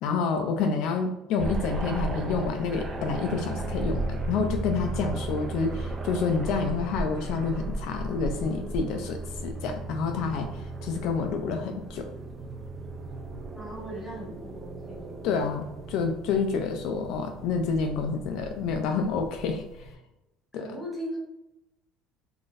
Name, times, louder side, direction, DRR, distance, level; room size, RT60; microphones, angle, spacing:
voice 1, 0.0-12.1 15.2-19.9 20.5-20.7, left 5 dB, 60° left, 5 dB, 0.3 m, -29 dB
sound 1, 1.4-20.0, right 2 dB, 25° right, 0.3 m, -35 dB
voice 2, 13.5-15.4 20.5-21.2, equal, ahead, -4 dB, 0.9 m, -39 dB
3.7 x 2.5 x 2.5 m, 0.92 s
cardioid pair, 165°, 0 cm